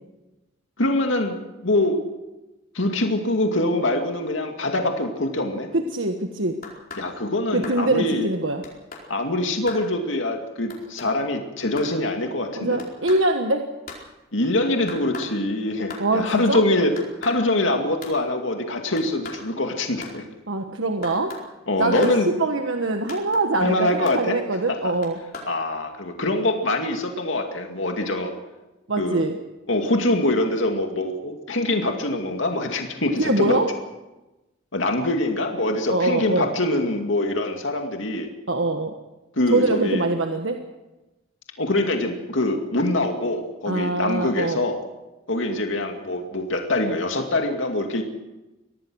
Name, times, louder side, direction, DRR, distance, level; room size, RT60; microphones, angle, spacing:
voice 1, 0.8-1.4 1.6-2.0 2.7-5.7 7.0-8.3 9.1-12.8 14.3-16.9 17.2-20.2 21.7-22.3 23.6-24.4 24.7-24.9 25.4-28.3 29.0-29.2 29.7-33.6 34.7-38.3 39.4-40.0 41.6-44.8 45.3-48.0, left 1 dB, 75° left, 3 dB, 2.3 m, -24 dB
voice 2, 5.7-6.6 7.5-8.6 12.6-13.7 16.0-16.6 20.5-21.3 21.8-25.2 28.9-29.3 33.2-33.7 35.9-36.5 38.5-38.9 39.5-40.6 43.7-44.6, right 2 dB, 75° right, 4 dB, 1.4 m, -23 dB
sound 1, 6.6-7.1 7.6-7.8 8.6-9.0 9.7-9.8 10.7-11.1 11.8-12.0 12.8-13.2 13.9-14.0 14.9-15.3 15.9-16.1 17.0-17.4 18.0-18.2 19.0-19.4 20.0-20.1 21.0-21.4 22.0-22.2 23.1-23.5 24.1-24.2 25.0-25.5, left 3 dB, 45° left, 4.6 m, -38 dB
24.0 x 18.0 x 6.4 m, 1.0 s
head